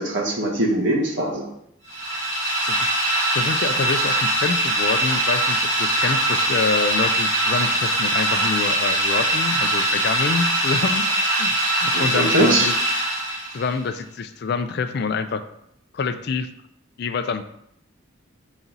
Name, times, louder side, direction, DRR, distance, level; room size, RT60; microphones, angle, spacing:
voice 1, 0.0-1.5 11.9-12.7, right 1 dB, 65° right, -1 dB, 1.3 m, -21 dB
sound 1, 1.9-13.7, right 1 dB, 35° right, 1.5 m, -22 dB
voice 2, 3.3-12.7 13.5-15.4 15.9-16.5 17.0-17.4, left 4 dB, 50° left, 10 dB, 0.4 m, -26 dB
5.9 x 4.0 x 3.9 m, 0.74 s
head